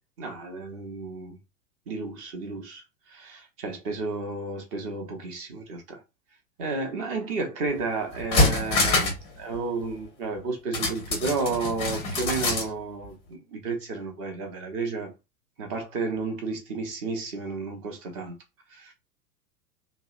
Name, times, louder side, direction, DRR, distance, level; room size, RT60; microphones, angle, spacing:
voice 1, 0.2-1.4 1.9-2.8 3.1-6.0 6.6-9.1 9.4-15.1 15.6-18.3 18.7-18.9, right 4 dB, 35° right, 0.7 m, -32 dB
sound 1, 7.7-7.8 8.1-9.3 9.5-9.6 10.7-12.7 13.0-13.1, left 2 dB, 15° left, 0.5 m, -25 dB
2.7 x 2.0 x 2.4 m
figure-of-eight pair, 100°, 49 cm